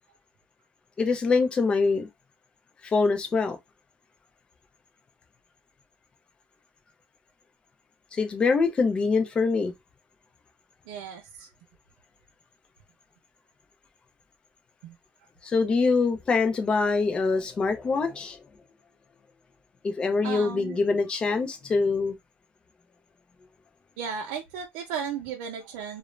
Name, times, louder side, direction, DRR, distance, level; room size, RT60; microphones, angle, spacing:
voice 1, 1.0-2.1 2.8-3.6 8.1-9.7 15.4-18.4 19.8-22.2, left 4 dB, 20° left, 0.5 m, -24 dB
voice 2, 10.9-11.5 14.8-14.9 20.2-20.8 24.0-26.0, right 7 dB, 85° right, 0.6 m, -35 dB
2.4 x 2.1 x 3.0 m
cardioid pair, 170°, 5 cm